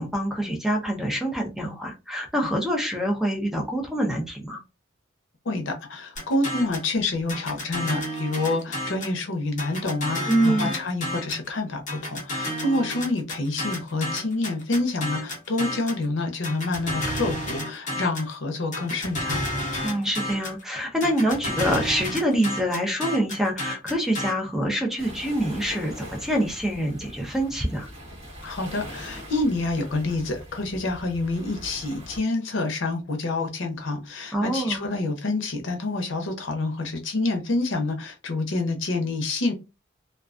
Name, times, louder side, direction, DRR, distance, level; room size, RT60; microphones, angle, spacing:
voice 1, 0.0-4.6 10.3-10.7 19.8-27.9 34.3-34.8, equal, ahead, 2 dB, 0.5 m, -25 dB
voice 2, 5.4-19.4 28.4-39.5, left 2 dB, 80° left, 5 dB, 0.6 m, -27 dB
sound 1, 6.2-6.9 7.3-9.2 9.6-11.5 11.9-16.0 16.4-18.3 18.7-20.6 21.0-24.3, left 1 dB, 40° left, 0.8 m, -31 dB
sound 2, 25.0-32.2, equal, 30° right, 1.1 m, -42 dB
2.3 x 2.2 x 2.4 m, 0.28 s
head